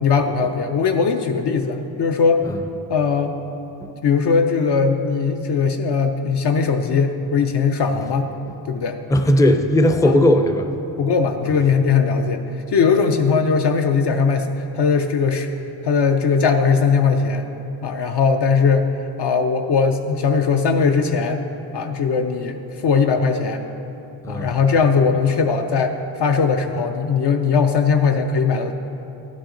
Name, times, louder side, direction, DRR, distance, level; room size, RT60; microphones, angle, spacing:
voice 1, 0.0-2.5 2.9-3.3 4.0-8.3 8.6-9.0 10.0-10.1 11.0-12.4 12.7-14.5 14.7-15.5 15.8-17.5 17.8-18.9 19.2-21.4 21.7-22.6 22.8-23.6 24.3-28.7, left 5 dB, 65° left, 5 dB, 0.6 m, -19 dB
voice 2, 9.1-10.7 11.4-11.5 24.2-24.5, left 1 dB, 10° left, 6 dB, 0.4 m, -17 dB
12.0 x 11.5 x 3.8 m, 2.9 s
wide cardioid pair, 170°, 45 cm